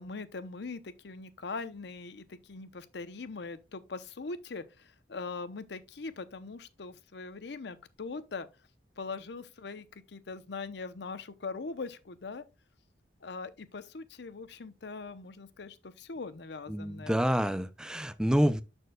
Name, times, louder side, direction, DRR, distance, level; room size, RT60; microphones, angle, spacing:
voice 1, 0.0-8.5 9.0-12.4 13.2-17.2, left 4 dB, 70° left, 0.7 m, -41 dB
voice 2, 16.7-18.6, equal, 5° right, 0.4 m, -27 dB
13.0 x 4.5 x 2.3 m
head